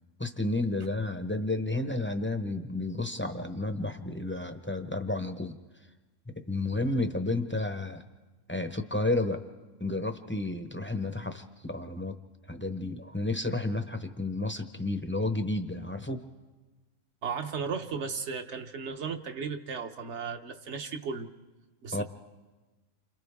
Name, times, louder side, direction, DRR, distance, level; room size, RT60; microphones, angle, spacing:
voice 1, 0.2-5.6 6.3-8.0 8.5-9.4 9.8-12.2 12.5-16.2 21.9-22.0, left 2 dB, 10° left, 7 dB, 0.7 m, -31 dB
voice 2, 17.2-21.3 21.8-22.0, right 5 dB, 55° right, 7 dB, 1.2 m, -35 dB
29.0 x 26.5 x 3.5 m, 1.2 s
omnidirectional pair, 1.5 m